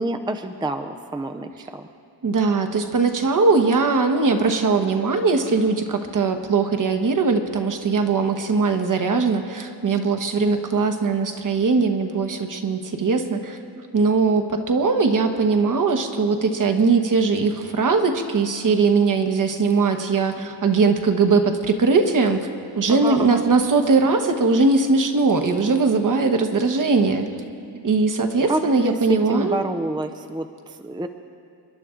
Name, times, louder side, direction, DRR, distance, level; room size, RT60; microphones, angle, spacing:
voice 1, 0.0-1.9 22.9-23.5 28.5-31.1, right 2 dB, 10° right, 7 dB, 0.5 m, -28 dB
voice 2, 2.2-13.6 13.9-22.5 22.7-27.3 27.8-29.6, right 4 dB, 45° right, 6 dB, 1.2 m, -20 dB
28.0 x 11.0 x 3.8 m, 2.4 s
wide cardioid pair, 110°, 42 cm